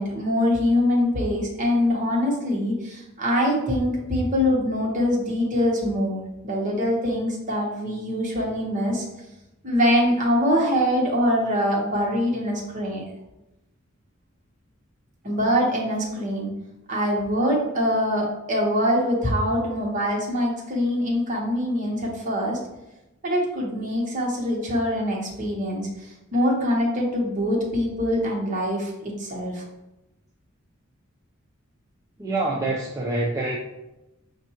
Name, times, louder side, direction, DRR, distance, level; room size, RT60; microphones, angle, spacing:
voice 1, 0.0-9.0 9.6-13.0 15.2-16.5 16.9-22.6 23.2-29.6, equal, 40° right, -2 dB, 1.1 m, -24 dB
voice 2, 32.2-33.6, right 2 dB, 15° right, -3 dB, 0.4 m, -26 dB
6.3 x 2.6 x 2.8 m, 0.95 s
head